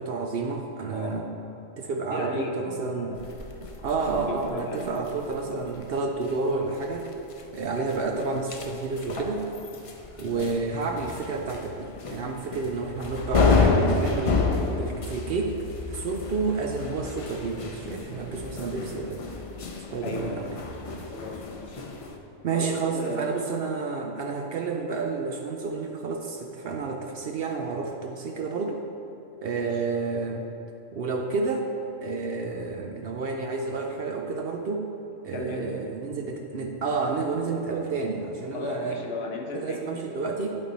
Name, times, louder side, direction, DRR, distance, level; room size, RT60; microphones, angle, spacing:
voice 1, 0.0-1.3 1.8-3.2 3.8-7.1 7.5-9.5 10.2-14.4 14.6-15.6 15.9-19.2 19.9-20.5 22.4-28.8 29.4-30.5 30.9-31.7 32.0-34.9 35.2-39.0 39.5-40.6, right 4 dB, 60° right, 2 dB, 0.7 m, -30 dB
voice 2, 0.9-1.3 2.1-3.2 4.1-4.9 10.2-10.8 20.0-20.5 21.1-21.8 22.5-23.3 29.5-29.8 35.3-35.9 38.5-40.0, left 3 dB, 60° left, 1 dB, 1.0 m, -36 dB
sound 1, 3.1-22.2, left 4 dB, 40° left, 0.5 m, -30 dB
11.5 x 4.4 x 4.0 m, 2.9 s
omnidirectional pair, 1.3 m